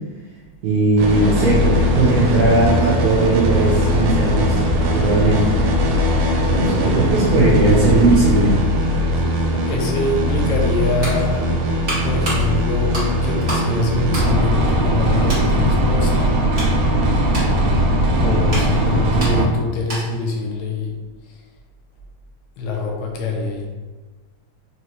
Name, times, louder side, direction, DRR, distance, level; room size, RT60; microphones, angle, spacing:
voice 1, 0.6-5.4 6.5-8.5, right 2 dB, 70° right, -6 dB, 1.7 m, -18 dB
sound 1, 1.0-19.4, equal, 90° right, 1.3 m, -19 dB
voice 2, 9.7-11.6 12.0-16.4 18.2-21.0 21.3-21.4 22.6-23.7, left 2 dB, 80° left, 0 dB, 2.0 m, -24 dB
sound 2, 11.0-13.7 14.0-15.0 15.3-15.5 16.1-20.3 20.6-20.8, right 1 dB, 35° right, 1.0 m, -31 dB
5.1 x 2.7 x 3.1 m, 1.3 s
omnidirectional pair, 3.4 m